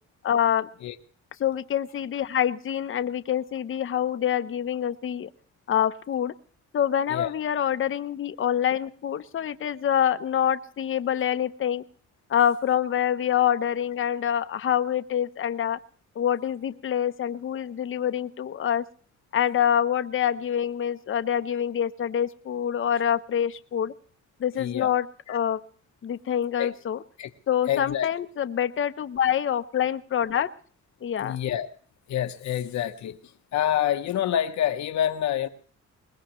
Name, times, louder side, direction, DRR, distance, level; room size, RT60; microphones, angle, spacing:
voice 1, 0.2-0.7 1.4-5.3 5.7-6.3 6.7-11.8 12.3-15.8 16.2-18.8 19.3-23.9 24.4-25.6 26.0-27.0 27.5-30.5 31.0-31.4, left 9 dB, 40° left, 0.8 m, -26 dB
voice 2, 24.6-24.9 25.3-25.4 26.6-26.7 27.2-27.3 27.7-28.1 31.2-31.7 32.1-33.2 33.5-35.5, left 10 dB, 70° left, 1.1 m, -27 dB
22.5 x 20.0 x 3.1 m
cardioid pair, 90°, 30 cm